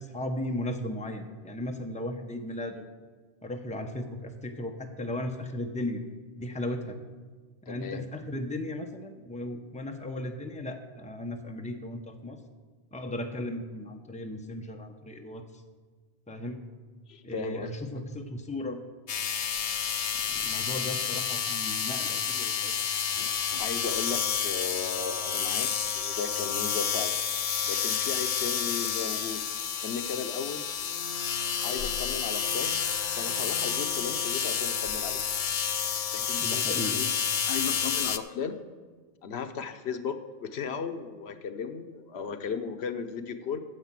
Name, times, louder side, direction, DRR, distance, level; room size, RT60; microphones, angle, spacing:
voice 1, 0.1-2.9 3.4-6.0 6.4-7.0 7.7-12.4 12.9-15.4 16.3-16.6 17.2-18.8 20.3-22.7 36.4-37.0, left 1 dB, 10° left, 4 dB, 0.8 m, -36 dB
voice 2, 7.7-8.0 17.1-17.7 20.4-20.6 23.6-27.1 27.7-29.4 29.8-30.7 31.6-32.8 33.2-35.2 36.1-37.1 37.5-38.6 39.2-43.6, left 6 dB, 80° left, 9 dB, 1.0 m, -36 dB
sound 1, 19.1-38.2, left 8 dB, 55° left, 0.4 m, -30 dB
Wind instrument woodwind instrument, 30.7-35.6, equal, 40° left, 3.9 m, -44 dB
9.6 x 7.4 x 7.4 m, 1.4 s
omnidirectional pair, 1.1 m